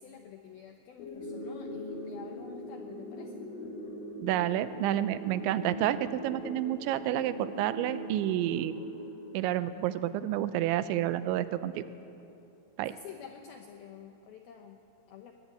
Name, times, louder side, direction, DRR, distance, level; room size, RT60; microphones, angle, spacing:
voice 1, 0.0-3.5 12.9-14.8 15.1-15.3, left 8 dB, 85° left, 4 dB, 2.1 m, -49 dB
sound 1, 1.0-10.0, equal, 65° left, 6.0 m, -41 dB
voice 2, 4.2-8.7 9.3-11.8 12.8-12.9, right 12 dB, 80° right, 12 dB, 2.8 m, -30 dB
22.0 x 17.5 x 9.4 m, 2.8 s
omnidirectional pair, 5.8 m